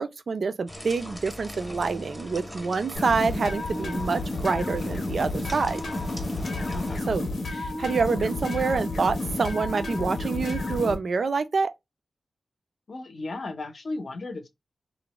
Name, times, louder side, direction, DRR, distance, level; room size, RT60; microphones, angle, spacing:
voice 1, 0.0-5.8 7.1-11.7, right 4 dB, 60° right, 0.4 m, -27 dB
sound 1, 0.7-7.0, equal, 5° left, 0.6 m, -40 dB
sound 2, 2.9-11.0, left 2 dB, 85° left, 0.7 m, -31 dB
voice 2, 6.7-7.0 12.9-14.5, left 2 dB, 55° left, 0.6 m, -35 dB
2.5 x 2.0 x 2.9 m
wide cardioid pair, 110°, 0 cm